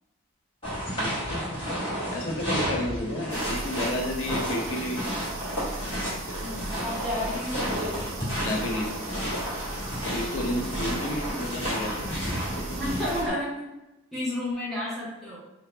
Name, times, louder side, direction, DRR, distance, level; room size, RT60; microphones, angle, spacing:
sound 1, 0.6-13.3, equal, 25° left, 1.3 m, -32 dB
voice 1, 0.9-1.4 2.1-5.2 8.4-8.9 9.2-9.7 10.1-12.2, left 1 dB, 75° left, 0 dB, 0.5 m, -31 dB
sound 2, 3.3-13.2, right 3 dB, 80° right, 0.4 m, -38 dB
voice 2, 6.3-8.3 12.8-13.6 14.1-15.4, left 1 dB, ahead, -8 dB, 0.9 m, -32 dB
2.8 x 2.0 x 3.1 m, 0.96 s
head